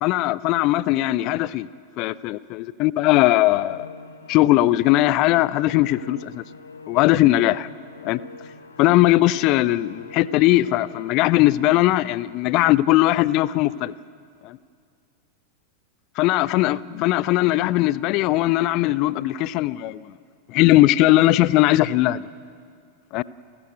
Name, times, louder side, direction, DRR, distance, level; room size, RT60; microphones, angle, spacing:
voice 1, 0.0-1.7 2.0-3.9 4.3-6.4 6.9-7.7 8.0-8.2 8.8-13.9 14.4-14.6 16.2-20.1 20.5-22.3 23.1-23.2, left 16 dB, 40° left, 0.5 m, -19 dB
Musical instrument, 3.5-12.0, left 3 dB, 75° left, 1.4 m, -44 dB
29.0 x 13.0 x 8.0 m
figure-of-eight pair, 90°, 0 cm